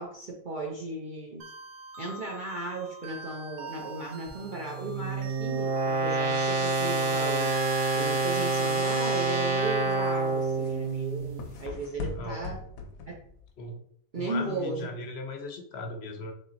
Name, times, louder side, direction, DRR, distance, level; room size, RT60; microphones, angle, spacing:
voice 1, 0.0-1.4 2.0-7.5 7.9-12.6 13.1-13.2 14.1-14.9, right 2 dB, 50° right, -2 dB, 0.6 m, -36 dB
sound 1, 1.4-10.1, right 4 dB, 85° right, 1.1 m, -45 dB
sound 2, 4.3-11.4, right 3 dB, 70° right, 1.3 m, -28 dB
sound 3, 9.6-13.6, left 4 dB, 85° left, 1.1 m, -42 dB
voice 2, 14.1-16.3, left 2 dB, 60° left, 4 dB, 0.8 m, -38 dB
3.4 x 2.8 x 3.8 m, 0.64 s
omnidirectional pair, 1.4 m